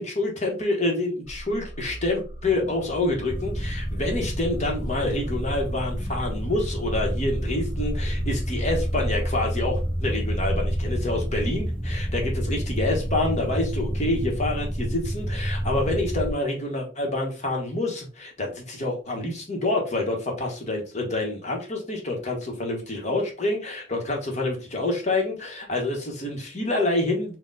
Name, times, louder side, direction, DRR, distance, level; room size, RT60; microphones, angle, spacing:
voice 1, 0.0-27.4, left 2 dB, 35° left, 1 dB, 1.0 m, -27 dB
sound 1, 1.3-12.1, equal, 80° left, 0.7 m, -40 dB
sound 2, 3.3-16.3, equal, 5° left, 0.7 m, -28 dB
4.3 x 2.2 x 3.8 m, 0.37 s
head